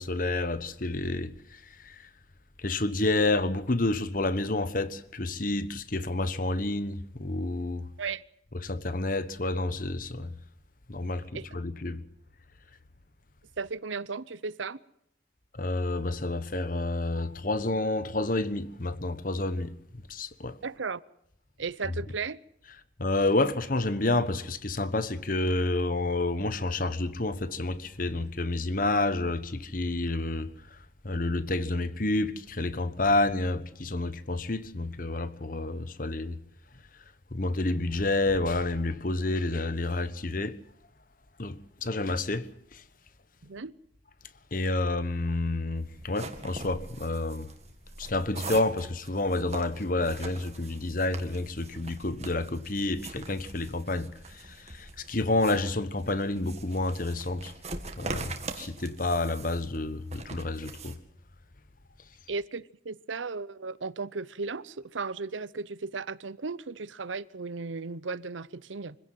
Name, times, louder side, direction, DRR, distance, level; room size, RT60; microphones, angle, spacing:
voice 1, 0.0-2.1 2.6-7.9 8.5-10.3 10.9-12.0 15.5-19.7 20.1-20.6 23.0-36.4 37.3-40.6 41.4-42.8 44.5-47.5 48.0-57.5 58.0-61.0, left 2 dB, 45° left, 1.3 m, -29 dB
voice 2, 13.6-14.8 20.6-21.0 21.6-22.4 43.4-43.7 62.3-69.0, right 4 dB, 85° right, 0.8 m, -35 dB
sound 1, 45.8-61.0, right 3 dB, 35° right, 2.1 m, -43 dB
25.0 x 16.5 x 7.7 m
head